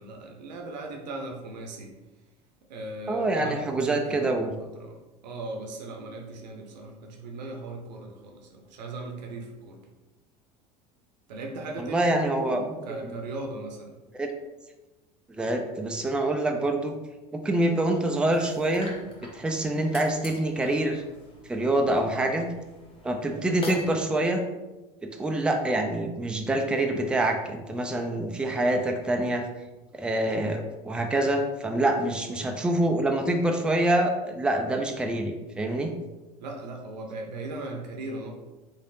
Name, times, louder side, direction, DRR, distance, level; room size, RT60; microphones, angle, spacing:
voice 1, 0.0-1.9 2.7-9.8 11.3-14.0 22.0-22.3 23.3-23.5 32.3-32.5 36.4-38.3, right 2 dB, 80° right, 2 dB, 0.6 m, -38 dB
voice 2, 3.1-4.5 11.8-12.7 13.0-13.2 14.1-14.3 15.4-16.9 17.3-19.0 19.2-21.0 21.5-22.5 23.0-24.4 25.0-29.5 29.9-35.9, right 1 dB, 5° right, 3 dB, 0.3 m, -26 dB
sound 1, 18.3-24.0, left 1 dB, 25° left, 0.9 m, -44 dB
3.2 x 2.7 x 2.5 m, 1.1 s
hypercardioid pair, 80°, 21 cm